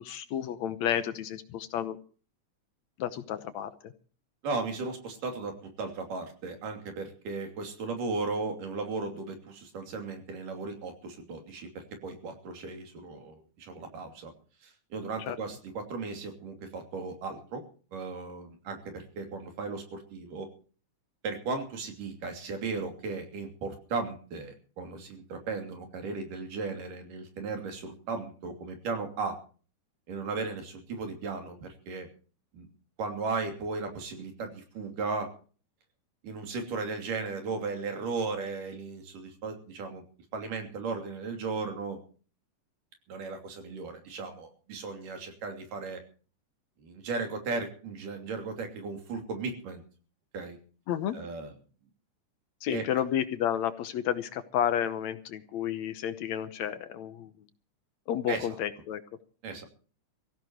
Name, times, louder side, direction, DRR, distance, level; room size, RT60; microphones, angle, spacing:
voice 1, 0.0-2.0 3.0-3.7 15.3-15.4 50.9-51.2 52.6-57.3 58.1-59.0, left 10 dB, 70° left, 11 dB, 2.1 m, -31 dB
voice 2, 4.4-14.3 14.6-17.6 17.9-20.5 21.2-29.4 30.1-32.1 32.5-32.7 33.0-35.3 36.2-40.0 40.3-42.0 43.1-46.0 46.8-49.8 50.3-50.6 51.1-51.5 52.7-52.9 58.3-58.6 59.4-59.7, right 4 dB, 85° right, 4 dB, 4.5 m, -36 dB
24.0 x 15.5 x 3.0 m, 0.39 s
omnidirectional pair, 3.6 m